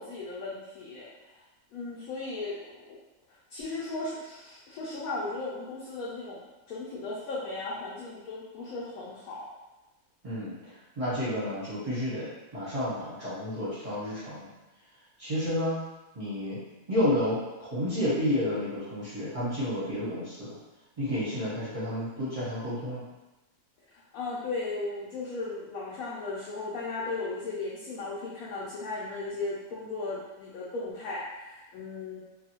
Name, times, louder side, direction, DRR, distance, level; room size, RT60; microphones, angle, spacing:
voice 1, 0.0-1.4 1.7-3.0 3.5-6.4 6.7-9.5 23.9-32.2, left 3 dB, 75° left, -6 dB, 1.0 m, -36 dB
voice 2, 10.2-10.6 11.0-12.3 12.5-14.5 15.2-15.7 16.1-16.6 16.9-20.6 21.0-23.0, left 1 dB, 30° right, -10 dB, 0.7 m, -30 dB
2.6 x 2.3 x 2.9 m, 1.0 s
omnidirectional pair, 1.6 m